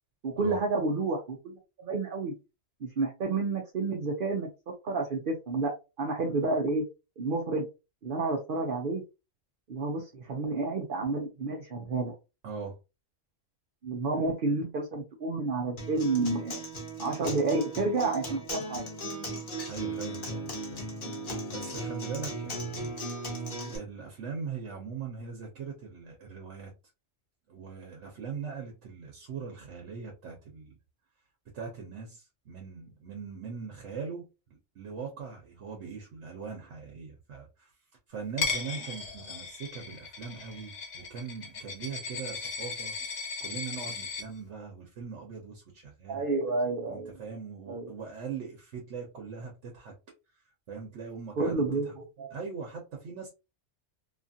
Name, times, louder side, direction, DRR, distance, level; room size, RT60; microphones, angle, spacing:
voice 1, 0.2-2.3 2.8-4.5 4.8-6.8 7.2-7.7 8.0-9.0 9.7-12.1 13.8-16.6 17.0-18.9 46.1-47.1 47.7-47.9 51.4-52.3, right 3 dB, 55° right, 0.8 m, -30 dB
voice 2, 12.4-12.8 19.7-20.9 21.5-23.0 23.7-26.7 27.5-30.8 31.5-37.7 38.1-42.9 43.4-46.3 46.9-49.9 50.7-51.9 52.3-53.3, right 5 dB, 75° right, 1.1 m, -41 dB
Acoustic guitar, 15.8-23.8, right 2 dB, 45° left, 1.1 m, -37 dB
Coin (dropping), 38.4-44.2, left 4 dB, 70° left, 1.1 m, -36 dB
2.8 x 2.4 x 2.6 m
omnidirectional pair, 1.2 m